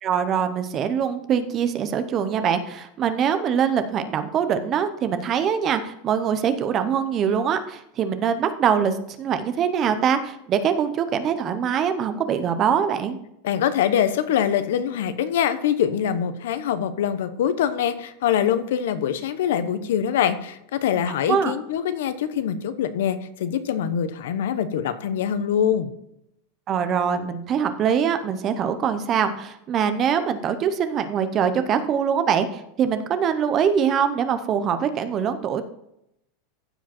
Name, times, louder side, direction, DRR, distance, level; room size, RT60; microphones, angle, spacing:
voice 1, 0.0-13.2 21.3-21.5 26.7-35.6, right 7 dB, 25° right, 10 dB, 0.7 m, -23 dB
voice 2, 13.4-25.9, left 9 dB, 75° left, 11 dB, 1.0 m, -24 dB
15.0 x 5.1 x 4.3 m, 0.79 s
supercardioid pair, 175°, 0 cm